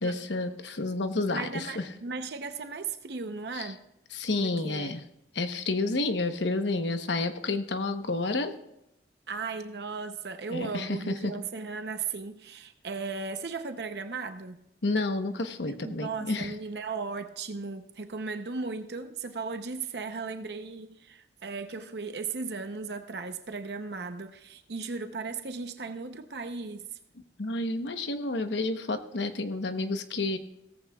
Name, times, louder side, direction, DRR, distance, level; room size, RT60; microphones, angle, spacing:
voice 1, 0.0-1.9 3.5-3.7 4.1-5.0 5.3-8.5 10.5-11.3 14.8-16.5 27.4-30.4, left 2 dB, 90° left, 8 dB, 1.0 m, -30 dB
voice 2, 1.3-3.8 4.4-4.9 9.3-14.6 15.8-26.9, right 4 dB, 65° right, 8 dB, 0.7 m, -36 dB
17.0 x 14.5 x 2.3 m, 0.84 s
head